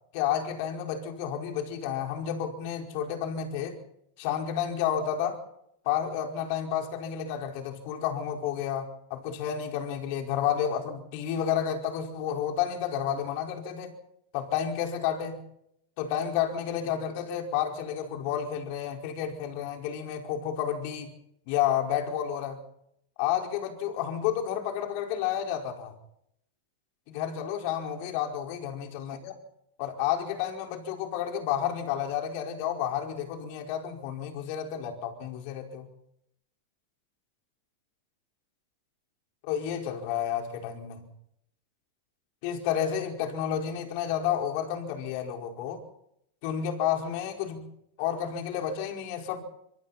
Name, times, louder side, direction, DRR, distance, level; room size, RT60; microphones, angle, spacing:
voice 1, 0.1-3.8 4.2-5.4 5.8-13.9 14.3-15.4 16.0-21.1 21.5-22.6 23.2-25.9 27.1-29.3 29.8-35.9 39.4-41.0 42.4-45.8 46.4-47.7 48.0-49.4, left 9 dB, 55° left, 4 dB, 4.9 m, -31 dB
26.0 x 24.0 x 4.3 m, 0.75 s
hypercardioid pair, 110°, 0 cm